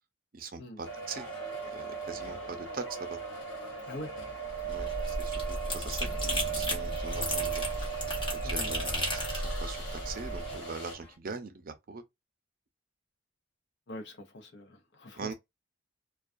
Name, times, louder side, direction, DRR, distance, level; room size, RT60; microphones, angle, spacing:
voice 1, 0.3-1.3 1.7-3.2 4.7-7.6 8.3-12.0 15.2-15.3, right 4 dB, 50° right, 0.5 m, -42 dB
sound 1, 0.8-11.0, right 6 dB, 85° left, 1.2 m, -38 dB
sound 2, 1.1-11.2, left 2 dB, 5° left, 0.7 m, -53 dB
voice 2, 3.8-4.2 8.4-8.8 13.9-15.3, left 1 dB, 65° left, 0.7 m, -44 dB
sound 3, 4.5-10.6, left 1 dB, 30° left, 1.1 m, -34 dB
2.3 x 2.3 x 2.5 m
head